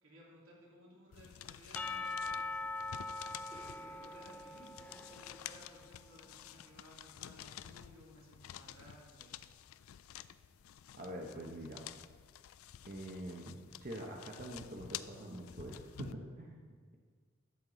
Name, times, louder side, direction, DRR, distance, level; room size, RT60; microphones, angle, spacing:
voice 1, 0.0-2.7 3.4-9.3, equal, 85° right, -4 dB, 2.8 m, -59 dB
sound 1, 1.1-16.1, left 11 dB, 90° left, 0.4 m, -51 dB
Percussion / Church bell, 1.8-5.9, left 3 dB, 5° left, 0.3 m, -42 dB
voice 2, 11.0-11.8 12.9-16.9, right 1 dB, 40° right, 0 dB, 0.9 m, -45 dB
13.0 x 7.4 x 3.9 m, 1.5 s
head